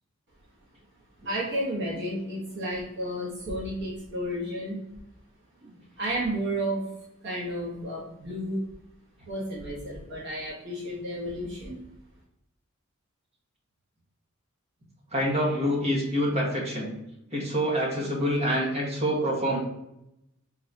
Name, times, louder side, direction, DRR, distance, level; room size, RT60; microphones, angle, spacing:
voice 1, 1.2-4.8 5.6-6.8 7.2-8.6 9.3-11.8, right 1 dB, 55° right, -5 dB, 1.3 m, -32 dB
voice 2, 15.1-16.9 17.3-19.6, equal, 30° right, -3 dB, 1.7 m, -26 dB
4.3 x 3.9 x 2.9 m, 0.85 s
head